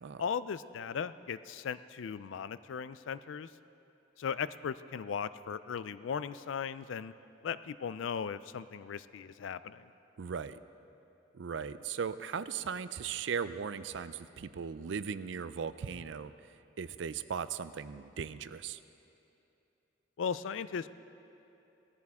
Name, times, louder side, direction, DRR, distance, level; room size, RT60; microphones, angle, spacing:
voice 1, 0.2-3.5 4.2-7.1 7.4-9.9 20.2-20.9, left 6 dB, 80° left, 15 dB, 0.4 m, -37 dB
voice 2, 10.2-10.6 11.3-16.3 16.8-18.8, right 6 dB, 70° right, 14 dB, 0.4 m, -38 dB
17.5 x 14.0 x 3.6 m, 2.9 s
head